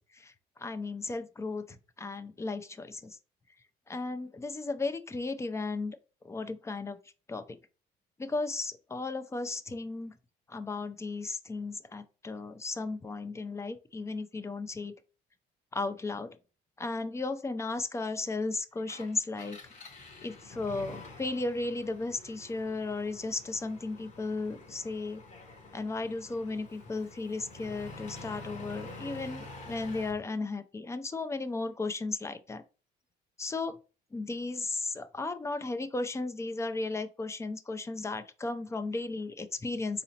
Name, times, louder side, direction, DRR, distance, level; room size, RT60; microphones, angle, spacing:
voice 1, 0.6-1.7 2.0-3.2 3.9-6.0 6.2-7.0 7.3-7.6 8.2-10.1 10.5-14.9 15.7-16.4 16.8-19.6 20.2-25.2 25.7-32.6 33.4-33.8 34.1-40.0, left 3 dB, 15° left, 0.5 m, -35 dB
Engine, 18.8-30.2, left 2 dB, 45° left, 1.0 m, -48 dB
4.0 x 2.9 x 2.8 m
cardioid pair, 110°, 17 cm